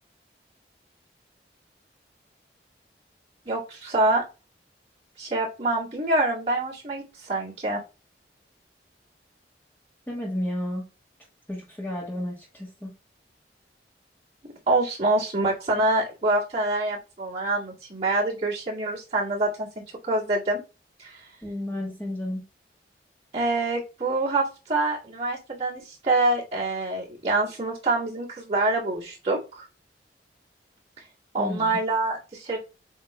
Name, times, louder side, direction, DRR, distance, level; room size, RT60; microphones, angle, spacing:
voice 1, 3.5-4.2 5.2-7.8 14.7-20.6 21.0-21.2 23.3-29.6 31.3-32.6, right 2 dB, 35° right, 2.1 m, -26 dB
voice 2, 10.1-10.9 11.5-12.9 21.4-22.4 31.4-31.8, left 1 dB, 10° left, 1.2 m, -32 dB
7.8 x 2.8 x 2.2 m
head